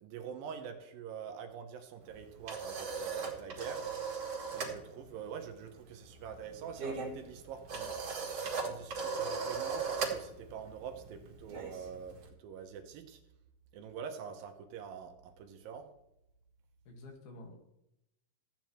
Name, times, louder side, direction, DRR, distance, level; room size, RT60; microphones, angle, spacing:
voice 1, 0.0-3.8 4.5-8.0 8.6-13.2 13.7-15.9, right 7 dB, 75° right, 6 dB, 2.6 m, -45 dB
sound 1, 2.1-4.8 5.1-5.4 5.6-12.3, right 5 dB, 50° right, 2.4 m, -38 dB
voice 2, 3.4-3.9 4.5-4.8 16.9-17.5, left 2 dB, 80° left, 2 dB, 3.7 m, -52 dB
15.0 x 8.8 x 3.1 m, 0.85 s
omnidirectional pair, 4.4 m